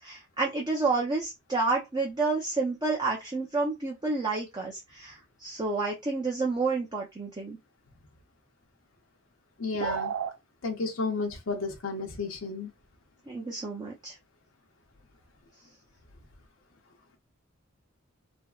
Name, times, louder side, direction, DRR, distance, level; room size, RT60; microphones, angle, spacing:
voice 1, 0.0-7.6 13.3-14.2, right 3 dB, 20° right, 0.5 m, -30 dB
voice 2, 9.6-10.1 10.6-12.7, left 4 dB, 65° left, 0.6 m, -32 dB
sound 1, 9.8-10.4, right 6 dB, 85° right, 0.3 m, -30 dB
3.3 x 2.0 x 2.3 m
head